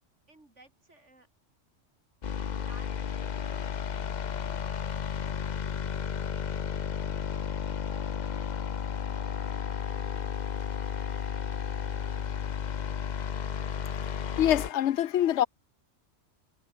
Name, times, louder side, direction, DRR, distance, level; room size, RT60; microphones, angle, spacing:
voice 1, 0.3-1.3 2.4-3.4 4.4-10.7, right 2 dB, 75° right, 6.3 m, -58 dB
sound 1, 2.2-14.7, left 7 dB, 45° left, 0.8 m, -33 dB
voice 2, 14.3-15.5, left 11 dB, 75° left, 0.9 m, -25 dB
omnidirectional pair, 1.2 m